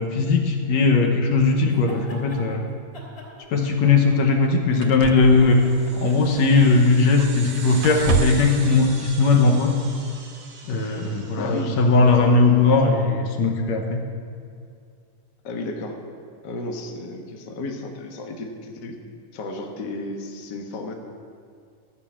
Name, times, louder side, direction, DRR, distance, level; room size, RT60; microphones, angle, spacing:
voice 1, 0.0-2.7 3.5-5.6 6.0-9.8 10.7-14.1, left 3 dB, 65° left, 3 dB, 2.0 m, -18 dB
sound 1, 1.7-2.4 2.9-4.3 4.7-6.9, left 2 dB, 40° left, 3.6 m, -41 dB
sound 2, 3.5-3.6 4.3-4.4 4.8-6.8 7.2-7.5 7.8-8.6 9.7-9.8, right 7 dB, 90° right, 2.5 m, -29 dB
sound 3, 5.3-12.1, right 4 dB, 60° right, 1.1 m, -41 dB
voice 2, 11.4-11.8 15.4-16.0 16.4-19.0 19.3-20.9, left 2 dB, 80° left, 2 dB, 0.9 m, -33 dB
14.5 x 6.6 x 8.6 m, 2.3 s
omnidirectional pair, 3.9 m